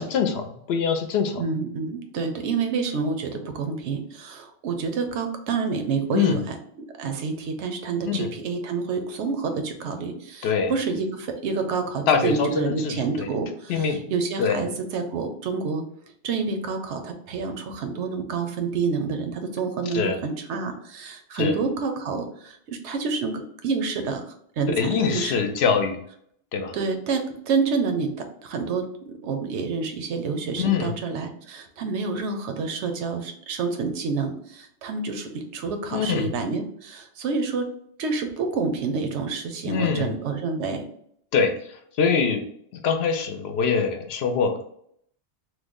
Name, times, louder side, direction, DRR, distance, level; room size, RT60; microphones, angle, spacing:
voice 1, 0.0-1.4 6.1-6.4 8.0-8.3 10.4-10.7 12.1-13.3 13.7-14.0 14.4-14.6 19.9-20.2 21.3-21.5 24.8-26.0 26.5-26.7 30.6-30.9 35.9-36.3 39.6-40.1 41.3-41.5 42.0-42.4 42.8-44.5, left 6 dB, 70° left, 6 dB, 0.8 m, -23 dB
voice 2, 1.4-15.8 16.2-24.2 24.6-25.4 26.7-37.7 38.0-40.8, right 4 dB, 90° right, 6 dB, 0.9 m, -28 dB
3.1 x 2.1 x 3.5 m, 0.68 s
omnidirectional pair, 1.1 m